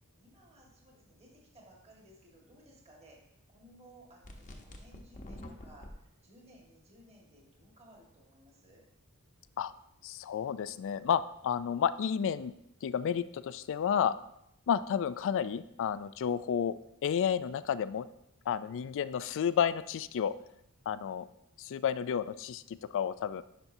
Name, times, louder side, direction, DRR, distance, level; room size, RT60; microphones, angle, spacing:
voice 1, 0.2-3.2 3.5-8.8, right 1 dB, 30° right, -2 dB, 1.6 m, -59 dB
sound 1, 4.2-5.9, left 1 dB, 35° left, 0.9 m, -47 dB
voice 2, 10.0-12.5 12.8-14.2 14.7-16.7 17.0-18.1 18.5-20.3 20.9-21.3 21.6-23.4, left 8 dB, 60° left, 16 dB, 0.3 m, -31 dB
10.5 x 5.4 x 2.7 m, 0.81 s
head